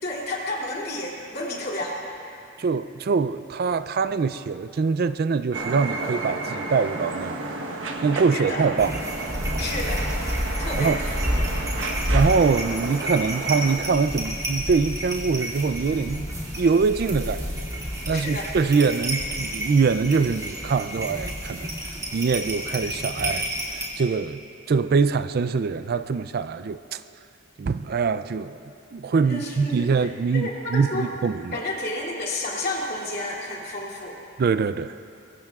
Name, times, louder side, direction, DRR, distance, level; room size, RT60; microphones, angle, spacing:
voice 1, 0.0-2.1 8.3-8.7 9.6-10.1 10.6-11.5 17.9-18.5 29.2-31.1 31.5-34.2, left 1 dB, 45° left, 2.8 m, -31 dB
voice 2, 2.6-7.4 8.0-8.9 10.8-11.0 12.1-16.3 16.6-17.6 18.1-21.7 22.1-23.5 24.0-24.4 24.7-27.0 27.6-28.6 28.9-31.6 34.4-34.9, right 5 dB, 45° right, 0.3 m, -23 dB
sound 1, 5.5-13.8, right 2 dB, 65° right, 1.1 m, -32 dB
sound 2, 8.8-23.9, equal, 15° right, 2.5 m, -29 dB
23.5 x 22.5 x 2.4 m
head